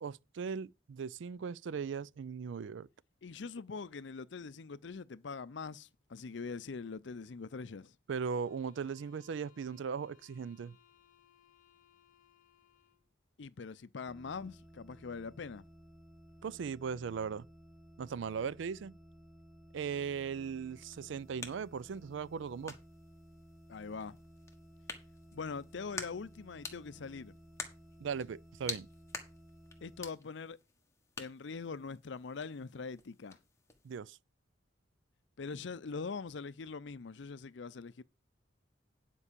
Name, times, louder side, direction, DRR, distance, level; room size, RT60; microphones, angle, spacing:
voice 1, 0.0-2.9 8.1-10.8 16.4-17.5 18.0-19.0 19.7-22.8 28.0-28.9 33.8-34.2, right 6 dB, 75° right, 0.4 m, -38 dB
voice 2, 3.2-8.0 13.4-15.6 23.7-24.2 25.3-27.4 29.8-30.6 31.2-33.4 35.4-38.0, left 4 dB, 70° left, 0.5 m, -43 dB
sound 1, 8.2-13.1, left 11 dB, 45° left, 1.2 m, -67 dB
sound 2, 14.1-30.1, equal, ahead, 0.7 m, -57 dB
sound 3, 20.8-34.0, left 4 dB, 15° left, 1.3 m, -49 dB
9.9 x 4.6 x 6.7 m
head